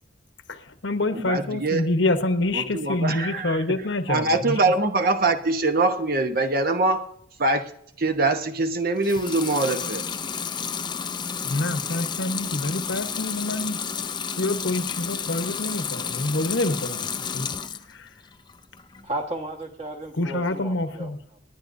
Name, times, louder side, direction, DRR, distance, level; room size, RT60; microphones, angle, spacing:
voice 1, 0.5-4.5 11.4-13.8 14.4-17.1 17.3-17.5 20.2-21.2, left 2 dB, 65° left, 1.0 m, -26 dB
voice 2, 1.1-1.9 2.5-3.7 4.1-7.0 7.4-7.7 8.0-10.1, right 2 dB, 45° right, 1.0 m, -23 dB
Water tap faucet / Sink (filling or washing) / Liquid, 9.0-17.9 18.3-19.0, left 6 dB, 20° left, 0.5 m, -31 dB
voice 3, 19.0-21.4, right 1 dB, 30° right, 1.5 m, -34 dB
28.5 x 10.5 x 2.6 m
head